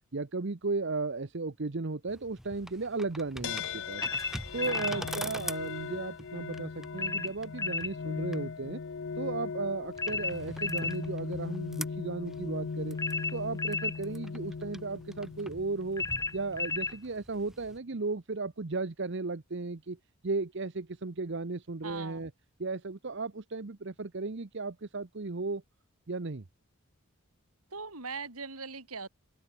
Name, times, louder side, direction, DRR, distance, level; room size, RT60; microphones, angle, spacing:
voice 1, 0.1-4.0 4.5-8.8 9.2-13.0 13.3-16.1 16.3-20.0 20.2-22.3 22.6-25.6 26.1-26.4, right 3 dB, 55° right, 0.8 m, -35 dB
sound 1, 2.1-17.8, equal, ahead, 1.9 m, -46 dB
sound 2, 3.4-17.0, left 5 dB, 55° left, 0.5 m, -39 dB
sound 3, 4.0-5.0 7.0-7.9 10.0-11.0 13.0-14.0 16.0-17.0, left 4 dB, 15° left, 1.0 m, -33 dB
voice 2, 21.8-22.2 27.7-29.1, right 4 dB, 80° right, 5.4 m, -40 dB
head